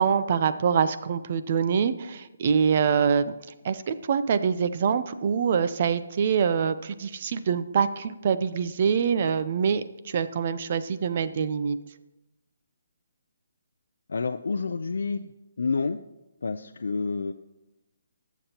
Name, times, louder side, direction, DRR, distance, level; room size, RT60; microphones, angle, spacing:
voice 1, 0.0-3.3 3.6-11.8, right 6 dB, 40° right, 12 dB, 0.5 m, -25 dB
voice 2, 14.1-15.3 15.6-16.0 16.4-17.3, left 4 dB, 80° left, 6 dB, 0.4 m, -28 dB
18.5 x 7.2 x 2.9 m, 0.99 s
hypercardioid pair, 165°, 0 cm